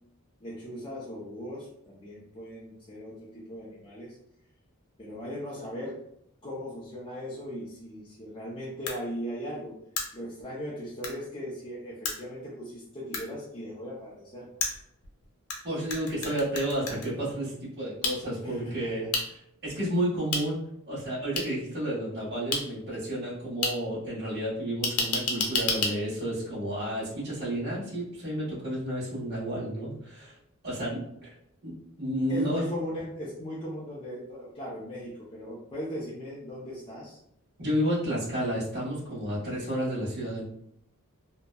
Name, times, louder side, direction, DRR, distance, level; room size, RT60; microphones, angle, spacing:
voice 1, 0.4-4.2 5.0-6.0 6.4-9.7 10.1-14.5 18.4-18.9 32.3-37.2, equal, 25° left, -7 dB, 0.5 m, -38 dB
sound 1, 8.9-9.0 10.0-10.1 11.0-11.1 12.1-12.2 13.1-13.2 14.6-15.6 15.9-17.1 18.0-18.1 19.1-19.2 20.3-20.4 21.4-21.5 22.5-22.6 23.6-23.7 24.8-25.9, left 4 dB, 90° left, 0.6 m, -28 dB
voice 2, 15.6-19.1 19.6-20.6 20.8-30.3 30.6-31.3 31.6-32.6 37.6-40.4, right 1 dB, 50° right, -10 dB, 1.1 m, -31 dB
2.6 x 2.1 x 2.2 m, 0.74 s
head